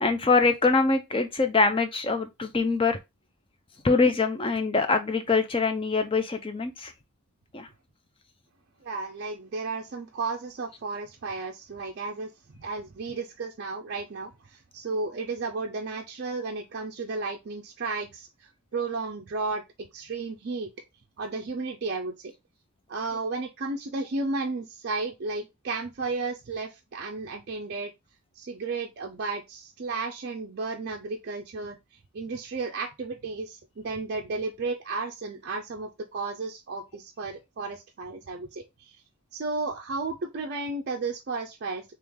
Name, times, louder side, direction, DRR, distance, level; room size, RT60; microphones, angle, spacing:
voice 1, 0.0-3.0 3.8-6.9 7.5-7.7, left 4 dB, 25° left, 0.5 m, -24 dB
voice 2, 8.8-12.3 12.6-18.3 18.7-19.6 19.9-20.7 21.2-22.3 22.9-27.9 28.4-31.8 32.1-39.0 39.3-41.9, right 3 dB, 50° right, 0.4 m, -33 dB
3.2 x 3.0 x 3.5 m
head